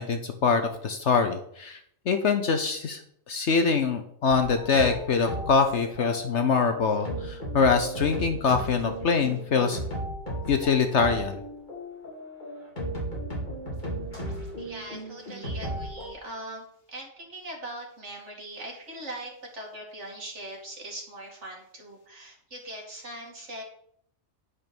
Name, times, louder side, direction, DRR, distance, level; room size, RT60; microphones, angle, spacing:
voice 1, 0.0-1.8 2.1-3.0 3.3-9.8 10.5-11.4, left 5 dB, 60° left, 6 dB, 1.1 m, -24 dB
sound 1, 4.3-16.1, right 1 dB, 35° left, 3.0 m, -35 dB
voice 2, 14.6-23.6, right 1 dB, 55° right, -1 dB, 2.9 m, -41 dB
9.8 x 5.3 x 6.1 m, 0.66 s
omnidirectional pair, 1.4 m